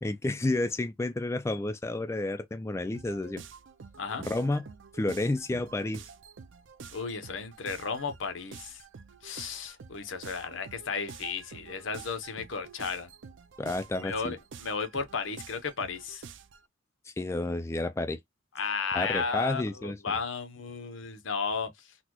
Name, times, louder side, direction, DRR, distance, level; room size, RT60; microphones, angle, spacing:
voice 1, 0.0-3.4 4.2-4.6 4.9-6.0 13.6-14.3 17.1-18.2 18.9-20.2, left 2 dB, 15° left, 0.3 m, -30 dB
sound 1, 2.9-16.7, right 5 dB, 70° right, 0.5 m, -48 dB
voice 2, 6.9-8.8 9.2-13.1 14.0-16.2 18.5-21.7, left 5 dB, 75° left, 0.8 m, -34 dB
4.1 x 2.2 x 2.9 m
head